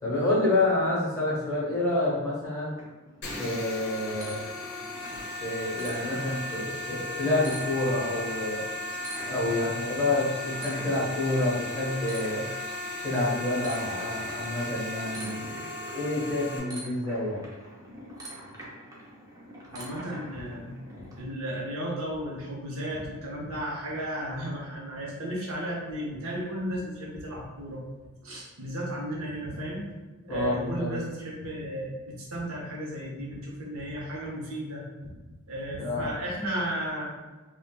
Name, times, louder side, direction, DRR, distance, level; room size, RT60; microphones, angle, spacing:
voice 1, 0.0-2.7 3.4-4.4 5.4-8.6 9.3-12.5 13.0-17.4 20.6-20.7 30.3-30.9 35.8-36.1, left 2 dB, 15° left, -7 dB, 0.9 m, -28 dB
sound 1, 2.8-21.2, right 1 dB, 15° right, 0.5 m, -46 dB
sound 2, 3.2-16.6, left 1 dB, 55° left, 0.7 m, -36 dB
voice 2, 19.7-20.7 21.0-27.8 28.2-29.9 30.2-34.8 35.5-37.0, right 1 dB, 70° right, -3 dB, 0.7 m, -34 dB
3.5 x 2.2 x 2.2 m, 1.2 s
head